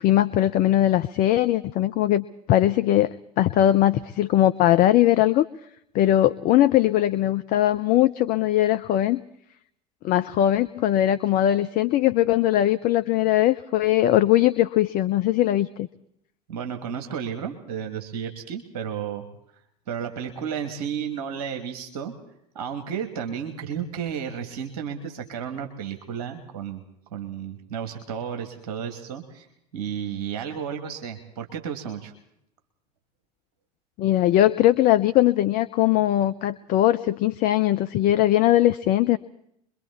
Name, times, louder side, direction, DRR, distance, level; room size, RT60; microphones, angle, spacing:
voice 1, 0.0-5.4 5.9-9.2 10.0-15.9 34.0-39.2, left 13 dB, 45° left, 12 dB, 0.8 m, -20 dB
voice 2, 16.5-19.2 19.9-22.1 22.5-26.8 27.1-29.4 29.7-32.1, right 8 dB, 65° right, 5 dB, 2.8 m, -32 dB
26.0 x 23.0 x 4.3 m, 0.74 s
figure-of-eight pair, 70°, 21 cm